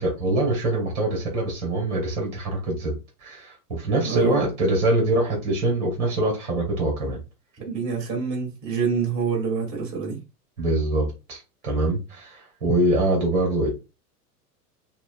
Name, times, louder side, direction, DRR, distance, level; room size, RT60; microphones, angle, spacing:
voice 1, 0.0-3.0 3.2-7.2 10.6-13.7, right 1 dB, 65° right, 2.4 m, -24 dB
voice 2, 4.0-4.4 7.6-10.2, right 6 dB, 35° right, 2.4 m, -26 dB
5.7 x 2.6 x 2.4 m
figure-of-eight pair, 90°, 47 cm